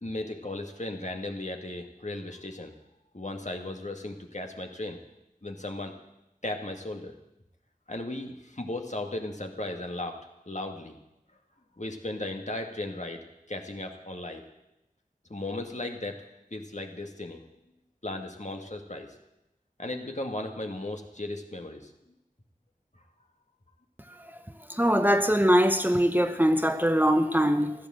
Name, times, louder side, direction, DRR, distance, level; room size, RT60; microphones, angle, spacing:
voice 1, 0.0-2.7 3.1-5.0 5.4-6.0 6.4-7.1 7.9-10.2 10.5-10.9 11.8-14.4 15.3-16.2 16.5-17.4 18.0-19.1 19.8-21.9, left 2 dB, 55° left, 2.0 m, -36 dB
voice 2, 24.8-27.7, equal, 10° right, 0.9 m, -22 dB
15.5 x 11.5 x 7.7 m
wide cardioid pair, 40°, 15 cm